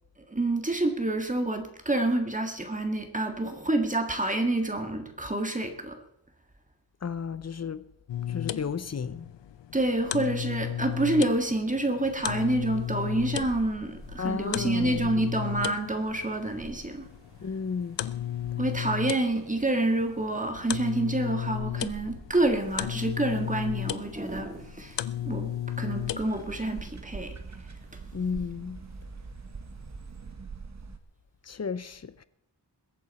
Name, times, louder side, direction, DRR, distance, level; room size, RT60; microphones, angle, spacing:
voice 1, 0.3-5.9 9.7-17.1 18.6-27.4, right 2 dB, 20° right, 1.8 m, -28 dB
voice 2, 7.0-7.8 8.3-9.3 14.2-15.1 17.4-18.0 28.1-28.8 31.4-32.2, left 6 dB, 40° left, 0.6 m, -33 dB
sound 1, 8.1-26.4, left 11 dB, 80° left, 0.7 m, -35 dB
sound 2, 12.0-30.3, equal, 55° right, 6.9 m, -51 dB
sound 3, 25.9-31.0, right 4 dB, 40° right, 1.2 m, -43 dB
21.5 x 9.0 x 4.2 m
wide cardioid pair, 150°, 43 cm